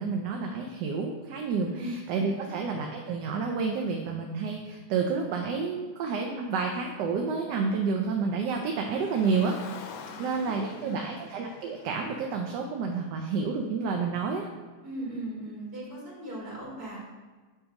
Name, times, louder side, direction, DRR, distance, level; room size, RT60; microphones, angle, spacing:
voice 1, 0.0-14.5, right 4 dB, 85° right, 2 dB, 1.2 m, -30 dB
voice 2, 1.6-2.0 2.3-2.5 10.0-11.1 14.8-17.0, right 1 dB, 70° right, -5 dB, 2.8 m, -39 dB
Car, 8.6-13.0, left 6 dB, 90° left, 1.2 m, -47 dB
7.7 x 2.9 x 5.2 m, 1.4 s
omnidirectional pair, 1.8 m